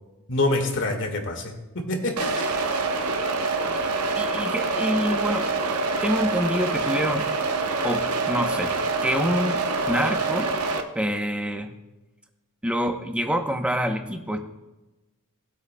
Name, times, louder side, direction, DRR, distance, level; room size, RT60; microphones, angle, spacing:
voice 1, 0.3-2.5, left 2 dB, 60° left, 3 dB, 1.8 m, -26 dB
sound 1, 2.2-10.8, right 3 dB, 75° right, 1.0 m, -26 dB
voice 2, 4.2-5.5 6.0-7.3 7.8-8.7 9.0-10.5 10.9-11.7 12.6-14.4, equal, 5° right, 5 dB, 0.9 m, -26 dB
19.5 x 8.3 x 2.3 m, 1.1 s
head